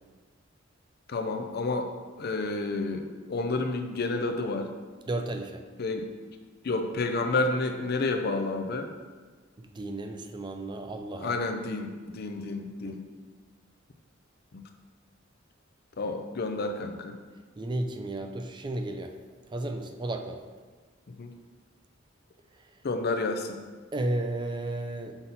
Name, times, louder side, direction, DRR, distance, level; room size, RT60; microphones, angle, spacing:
voice 1, 1.1-1.9 2.2-4.7 5.8-6.1 6.6-8.9 11.2-13.1 14.5-14.6 16.0-17.2 21.2-21.3 22.8-23.6, left 3 dB, 55° left, 6 dB, 0.5 m, -30 dB
voice 2, 5.1-5.7 9.6-11.4 12.9-13.0 17.6-19.1 19.5-20.4 22.5-22.8 23.9-25.2, right 2 dB, 25° right, 6 dB, 0.4 m, -33 dB
5.8 x 4.0 x 4.0 m, 1.4 s
head